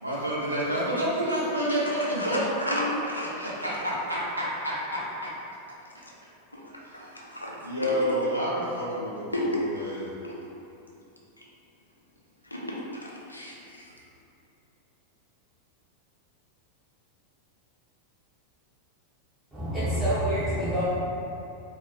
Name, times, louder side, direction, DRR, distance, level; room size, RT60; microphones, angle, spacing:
voice 1, 0.0-3.0 3.4-5.3 7.6-10.1, equal, 85° right, -8 dB, 0.6 m, -29 dB
voice 2, 2.2-3.7 6.9-7.5 7.8-7.9 9.3-9.6 10.2-10.3 12.5-12.8 13.0-13.8, left 1 dB, 85° left, -4 dB, 0.4 m, -32 dB
voice 3, 19.5-20.8, right 1 dB, 5° right, -14 dB, 0.6 m, -27 dB
2.4 x 2.0 x 2.7 m, 2.7 s
figure-of-eight pair, 90°, 0 cm